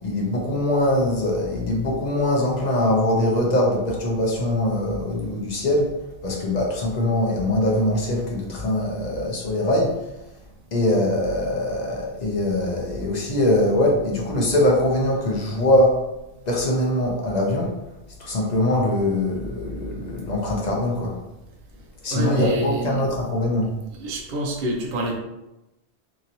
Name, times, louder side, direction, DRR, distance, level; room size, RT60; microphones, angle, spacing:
voice 1, 0.0-5.9 6.2-10.1 10.7-16.0 16.5-17.7 18.2-21.2 22.0-23.7, left 1 dB, 45° left, -2 dB, 0.7 m, -22 dB
voice 2, 22.1-23.0 23.9-25.2, equal, 60° right, 0 dB, 0.6 m, -26 dB
2.9 x 2.8 x 2.5 m, 0.94 s
omnidirectional pair, 1.2 m